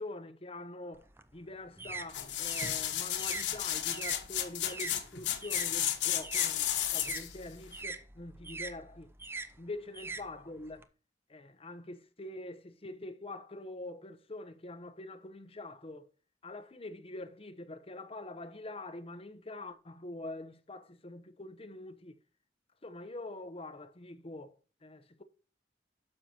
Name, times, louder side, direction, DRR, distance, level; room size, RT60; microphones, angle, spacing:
voice 1, 0.0-9.1 9.6-10.9 11.3-16.1 16.4-22.2 22.8-25.2, left 2 dB, 35° left, 0.8 m, -45 dB
sound 1, 0.9-5.7 6.0-10.8, right 3 dB, 15° right, 0.6 m, -43 dB
sound 2, 2.1-7.3 7.8-7.9, left 11 dB, 90° left, 1.2 m, -33 dB
9.8 x 6.4 x 2.9 m
head